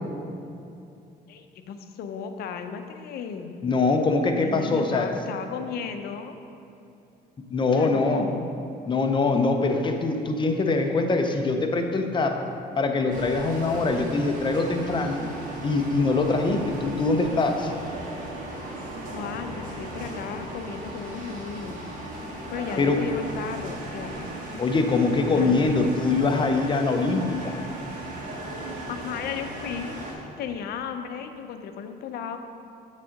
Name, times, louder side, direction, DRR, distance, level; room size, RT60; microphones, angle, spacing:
voice 1, 1.3-3.5 4.3-6.4 7.7-8.5 19.1-21.9 22.5-24.2 25.3-25.9 28.9-29.9 30.4-32.4, left 7 dB, 70° left, 7 dB, 0.6 m, -35 dB
voice 2, 3.6-5.1 7.5-8.3 8.9-12.5 12.8-15.2 15.6-17.7 22.8-23.0 24.6-27.6, left 3 dB, 30° left, 4 dB, 0.7 m, -23 dB
sound 1, 13.1-30.1, right 1 dB, 50° right, 1.7 m, -37 dB
7.4 x 3.7 x 6.4 m, 2.6 s
cardioid pair, 110°, 17 cm